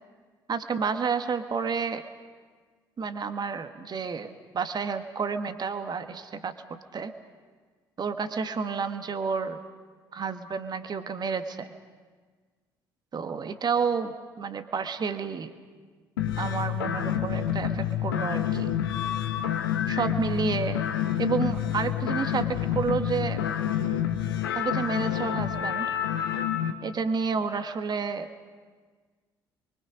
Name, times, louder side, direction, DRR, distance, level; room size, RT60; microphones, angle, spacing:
voice 1, 0.5-2.0 3.0-7.1 8.0-9.6 10.1-11.7 13.1-15.5 16.4-18.7 19.8-20.8 21.2-23.4 24.5-25.9 26.8-28.3, right 5 dB, 35° right, 9 dB, 1.5 m, -30 dB
sound 1, 16.2-26.7, left 10 dB, 75° left, 1.2 m, -28 dB
29.5 x 23.5 x 5.2 m, 1.5 s
figure-of-eight pair, 50°, 12 cm